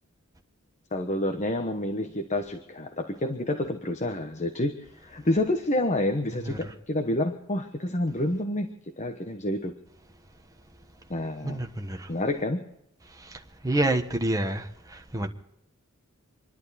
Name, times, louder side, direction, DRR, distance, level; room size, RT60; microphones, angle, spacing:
voice 1, 0.9-9.7 11.1-11.6 12.1-12.6, left 1 dB, 35° left, 1.2 m, -28 dB
voice 2, 6.3-6.7 11.4-12.1 13.2-15.3, right 1 dB, 15° right, 1.3 m, -29 dB
27.0 x 11.5 x 4.2 m
head